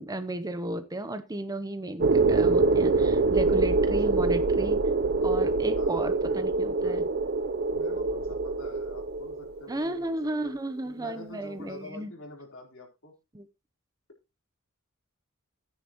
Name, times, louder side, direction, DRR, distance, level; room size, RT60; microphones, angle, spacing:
voice 1, 0.0-4.8 5.2-7.1 9.7-12.1 13.3-13.5, right 1 dB, 15° right, 0.7 m, -34 dB
sound 1, 2.0-9.8, right 3 dB, 50° right, 0.6 m, -25 dB
voice 2, 5.8-7.0 7.7-10.2 10.4-10.6 10.8-13.1, left 2 dB, 65° left, 3.8 m, -46 dB
14.0 x 9.6 x 3.0 m
head